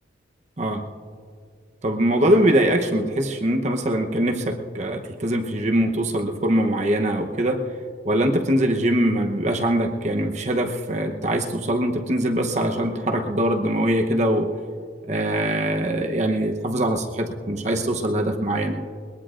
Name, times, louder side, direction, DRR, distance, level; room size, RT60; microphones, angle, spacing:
voice 1, 0.6-0.9 1.8-7.6 8.0-14.5 15.1-18.8, right 1 dB, 35° right, 4 dB, 0.9 m, -22 dB
22.0 x 20.5 x 2.5 m, 2.2 s
head